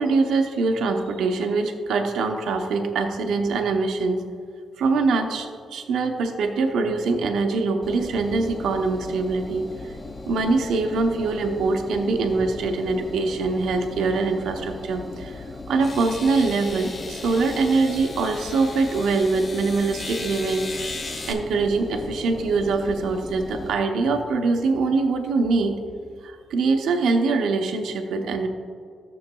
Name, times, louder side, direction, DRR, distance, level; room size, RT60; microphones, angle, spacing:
voice 1, 0.0-4.2 4.8-9.7 10.3-20.7 21.1-25.8 26.2-28.5, right 3 dB, 90° right, 4 dB, 0.7 m, -23 dB
Engine, 7.8-23.7, left 3 dB, 25° left, 0.6 m, -38 dB
sound 1, 14.9-15.0 15.8-21.3, left 3 dB, 45° left, 1.2 m, -37 dB
12.5 x 7.0 x 2.3 m, 2.2 s
cardioid pair, 130°, 0 cm